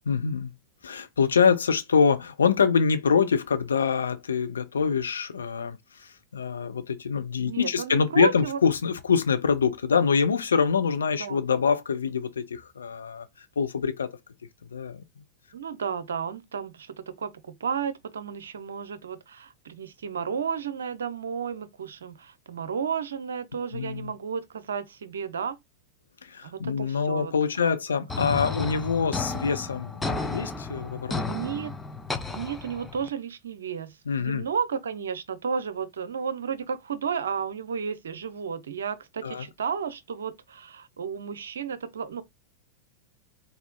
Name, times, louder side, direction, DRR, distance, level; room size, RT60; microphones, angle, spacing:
voice 1, 0.1-0.5 0.8-13.3 13.6-14.1 14.7-15.0 23.7-24.1 26.2-31.2 34.1-34.5 39.2-39.5, left 6 dB, 70° left, 0.7 m, -25 dB
voice 2, 7.4-8.6 11.2-11.4 15.5-25.6 26.4-28.1 31.3-31.7 32.3-42.2, right 6 dB, 65° right, 0.7 m, -33 dB
sound 1, 28.1-33.1, left 3 dB, 10° left, 0.6 m, -33 dB
4.3 x 4.1 x 2.3 m
figure-of-eight pair, 90°, 0 cm